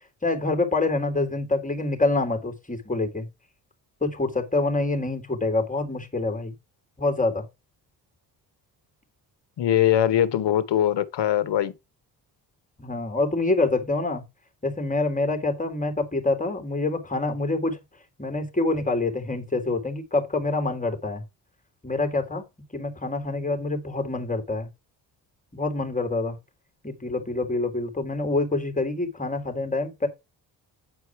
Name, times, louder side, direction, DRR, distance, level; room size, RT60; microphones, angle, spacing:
voice 1, 0.2-3.3 4.0-6.5 7.0-7.4 12.8-14.2 14.6-17.8 18.2-21.2 21.8-22.4 22.7-24.7 25.5-26.4 26.8-30.1, left 2 dB, 15° left, 3.3 m, -26 dB
voice 2, 9.6-11.7, left 11 dB, 65° left, 1.2 m, -21 dB
9.7 x 4.6 x 4.7 m
supercardioid pair, 50°, 45 cm